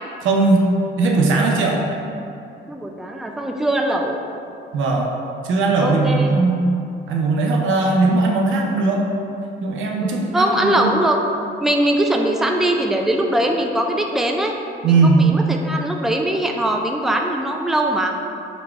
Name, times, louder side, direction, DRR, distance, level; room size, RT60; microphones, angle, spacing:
voice 1, 0.2-0.6 1.0-1.8 4.7-5.1 5.4-6.7 7.1-9.0 9.6-11.0 14.8-15.2, right 3 dB, 80° right, 0 dB, 0.6 m, -18 dB
voice 2, 2.7-4.2 5.8-6.3 10.0-11.2 11.6-14.5 14.8-18.1, right 1 dB, ahead, 2 dB, 0.3 m, -21 dB
4.0 x 2.2 x 4.4 m, 2.6 s
cardioid pair, 90°, 20 cm